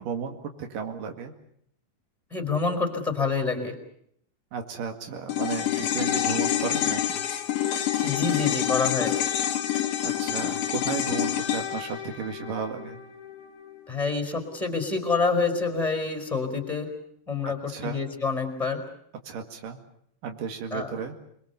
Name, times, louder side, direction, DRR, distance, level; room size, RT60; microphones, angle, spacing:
voice 1, 0.0-1.3 4.5-7.3 10.0-13.0 17.7-18.0 19.3-19.8 20.2-21.1, right 6 dB, 85° right, 5 dB, 3.7 m, -34 dB
voice 2, 2.3-3.7 8.0-9.2 13.9-16.9 17.3-18.8 20.7-20.9, left 4 dB, ahead, 5 dB, 4.0 m, -27 dB
sound 1, 5.3-13.8 14.1-14.2, left 11 dB, 70° left, 2.9 m, -27 dB
28.0 x 21.5 x 6.9 m, 0.70 s
omnidirectional pair, 3.7 m